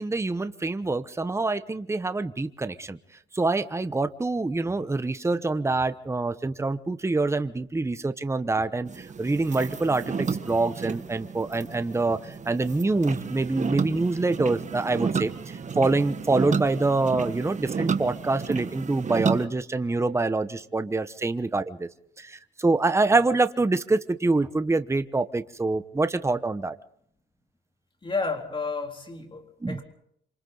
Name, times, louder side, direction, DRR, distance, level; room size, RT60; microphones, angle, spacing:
voice 1, 0.0-3.0 3.3-21.9 22.2-26.7 29.6-29.8, right 3 dB, 15° right, 11 dB, 1.0 m, -26 dB
sound 1, 8.9-19.5, right 5 dB, 35° right, 1.5 m, -32 dB
voice 2, 28.0-29.8, left 4 dB, 25° left, 3 dB, 3.8 m, -31 dB
27.5 x 26.0 x 4.0 m, 0.69 s
cardioid pair, 90°, 20 cm